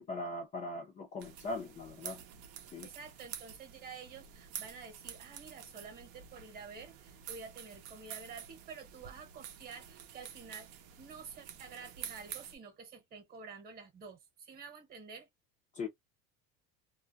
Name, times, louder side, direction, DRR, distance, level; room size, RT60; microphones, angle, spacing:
voice 1, 0.0-2.2 2.7-2.9 15.7-15.9, left 2 dB, 25° left, 0.6 m, -40 dB
sound 1, 1.2-12.6, right 9 dB, 50° right, 0.7 m, -49 dB
voice 2, 2.8-15.3, right 5 dB, 30° right, 1.1 m, -50 dB
2.3 x 2.1 x 2.6 m
cardioid pair, 155°, 32 cm